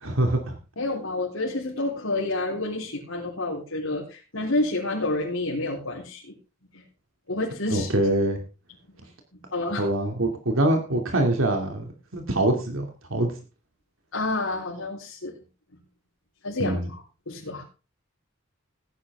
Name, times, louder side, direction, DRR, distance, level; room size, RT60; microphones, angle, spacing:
voice 1, 0.0-0.6 7.7-8.4 9.8-13.4 16.6-16.9, right 1 dB, 80° right, 4 dB, 2.4 m, -24 dB
voice 2, 0.8-6.3 6.7-6.8 7.3-7.9 9.5-9.8 14.1-15.3 16.4-17.6, left 2 dB, 90° left, -5 dB, 3.8 m, -29 dB
16.5 x 10.5 x 3.5 m, 0.32 s
head